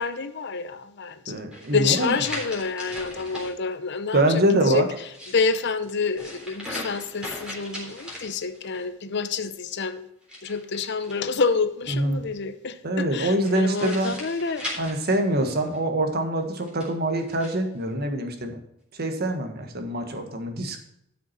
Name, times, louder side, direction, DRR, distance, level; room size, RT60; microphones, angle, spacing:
voice 1, 0.0-1.2 1.7-4.9 5.3-10.0 10.4-14.7, left 4 dB, 55° left, 12 dB, 0.8 m, -28 dB
voice 2, 1.3-2.1 4.1-4.9 11.9-12.2 12.8-14.1 14.8-18.6 18.9-20.8, right 1 dB, 50° right, 5 dB, 1.6 m, -24 dB
sound 1, 1.5-3.5 4.9-8.8 10.2-11.5 13.4-15.8 16.5-17.6, left 1 dB, 5° right, 3.6 m, -39 dB
12.5 x 6.2 x 4.4 m, 0.77 s
head